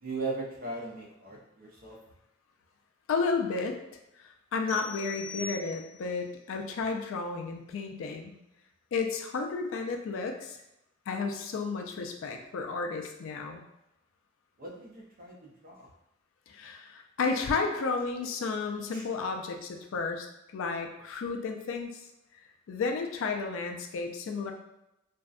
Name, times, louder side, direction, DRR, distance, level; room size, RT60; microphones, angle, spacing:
voice 1, 0.0-2.0 14.6-15.9 18.9-19.0, right 3 dB, 40° right, -2 dB, 0.5 m, -38 dB
voice 2, 3.1-3.7 4.2-8.4 8.9-10.6 11.1-13.6 16.5-20.3 20.5-22.0 22.7-24.5, left 4 dB, 60° left, 4 dB, 0.3 m, -32 dB
sound 1, 4.7-6.2, left 3 dB, 20° left, 0.9 m, -42 dB
2.6 x 2.1 x 2.3 m, 0.89 s
head